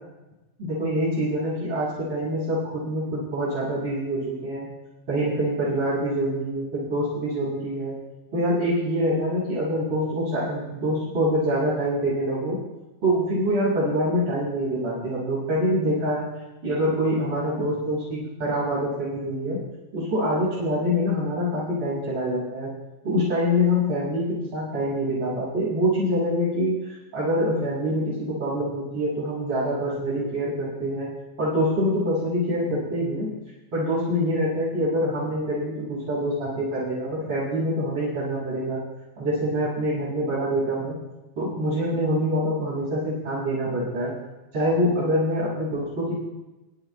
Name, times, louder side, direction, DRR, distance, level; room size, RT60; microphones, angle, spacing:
voice 1, 0.6-4.7 5.1-7.9 8.3-12.6 13.0-16.3 16.6-19.6 19.9-22.7 23.0-24.2 24.5-26.7 27.1-31.1 31.4-33.3 33.7-38.8 39.2-40.9 41.4-44.1 44.5-46.2, equal, 35° right, -8 dB, 6.5 m, -25 dB
24.5 x 12.5 x 2.2 m, 1.1 s
omnidirectional pair, 3.9 m